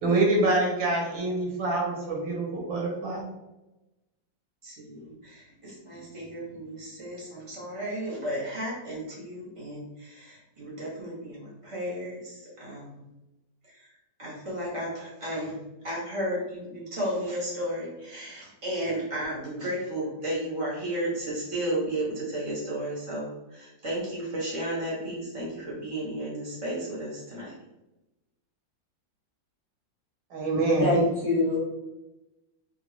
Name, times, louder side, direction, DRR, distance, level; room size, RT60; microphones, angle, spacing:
voice 1, 0.0-3.2 30.3-30.9, right 2 dB, 75° right, -2 dB, 1.7 m, -25 dB
voice 2, 4.6-13.0 13.7-13.9 14.2-15.6 15.8-27.5, right 1 dB, 50° right, -7 dB, 0.4 m, -33 dB
voice 3, 30.8-31.6, left 2 dB, 40° left, -7 dB, 1.4 m, -24 dB
4.1 x 2.2 x 3.0 m, 0.99 s
omnidirectional pair, 2.0 m